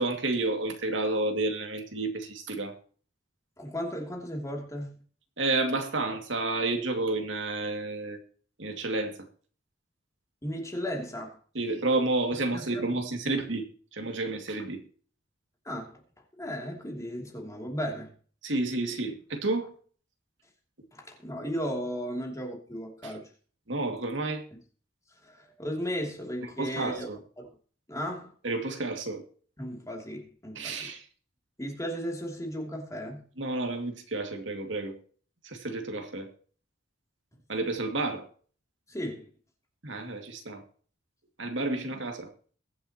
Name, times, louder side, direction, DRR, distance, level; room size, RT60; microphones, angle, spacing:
voice 1, 0.0-2.7 5.4-8.2 8.6-9.2 11.5-13.7 13.9-14.8 18.4-19.7 23.0-23.1 23.7-24.5 26.6-27.2 28.4-29.3 30.6-31.0 33.4-35.0 35.4-36.3 37.5-38.3 39.8-40.6 41.4-42.3, right 2 dB, 75° right, 2.3 m, -30 dB
voice 2, 3.6-5.0 10.4-11.4 12.5-12.9 15.6-16.0 16.3-18.1 20.9-23.3 24.5-24.6 25.2-27.1 27.4-27.5 27.9-28.3 29.6-30.9 31.6-33.2 38.9-39.3, equal, 15° left, 2.8 m, -35 dB
22.0 x 7.5 x 2.9 m
head